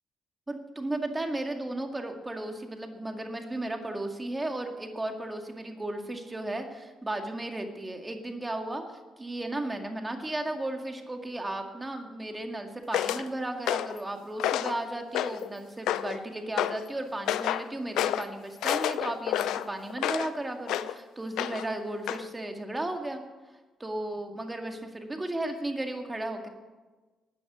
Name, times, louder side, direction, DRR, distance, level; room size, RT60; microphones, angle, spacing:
voice 1, 0.5-8.8 9.2-23.2 23.8-26.5, right 1 dB, 15° right, 4 dB, 2.0 m, -35 dB
sound 1, 12.9-13.2 13.7-14.0 14.4-14.8 15.1-15.5 15.9-16.2 16.6-16.8 17.3-17.7 18.0-18.3 18.6-20.3 20.7-20.9 21.4-21.7 22.1-22.2, left 12 dB, 85° left, 0.5 m, -29 dB
13.0 x 9.1 x 8.0 m, 1.3 s
cardioid pair, 90°, 0 cm